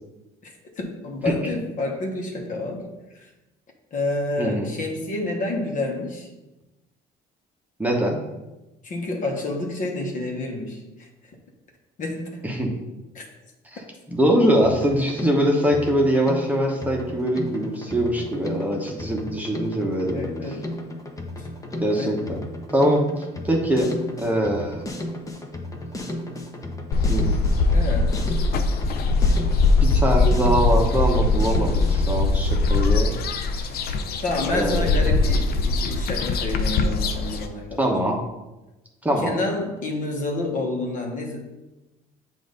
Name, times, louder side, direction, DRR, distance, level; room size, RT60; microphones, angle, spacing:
voice 1, 0.4-2.9 3.1-3.3 3.9-6.3 8.8-11.1 12.0-12.4 13.1-13.2 20.1-20.8 21.4-21.5 21.9-22.4 27.7-28.2 34.2-37.9 39.2-41.5, left 2 dB, 50° left, 1 dB, 1.2 m, -29 dB
voice 2, 4.4-4.7 7.8-8.2 12.4-12.7 14.1-20.3 21.8-22.4 22.7-23.9 24.2-24.9 27.1-27.4 29.8-33.1 34.5-34.9 37.8-38.2 39.0-39.3, equal, 10° right, 0 dB, 1.0 m, -23 dB
Drum kit, 14.6-32.1, left 1 dB, 20° left, 0.8 m, -34 dB
sound 1, 26.9-37.5, left 3 dB, 65° left, 0.6 m, -21 dB
7.5 x 2.7 x 5.1 m, 1.0 s
cardioid pair, 110°, 17 cm